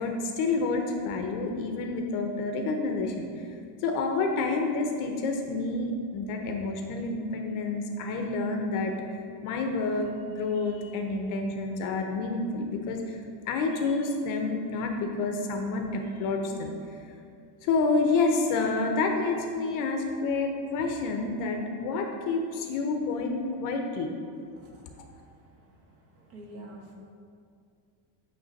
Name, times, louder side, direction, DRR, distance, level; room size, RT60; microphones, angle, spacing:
voice 1, 0.0-3.4 3.8-8.9 9.4-10.1 10.4-13.2 13.5-16.7 17.6-24.1, left 3 dB, 40° left, 3 dB, 0.6 m, -29 dB
voice 2, 26.2-26.9, right 1 dB, 60° right, -1 dB, 1.4 m, -46 dB
8.9 x 3.2 x 5.2 m, 2.3 s
cardioid pair, 170°, 49 cm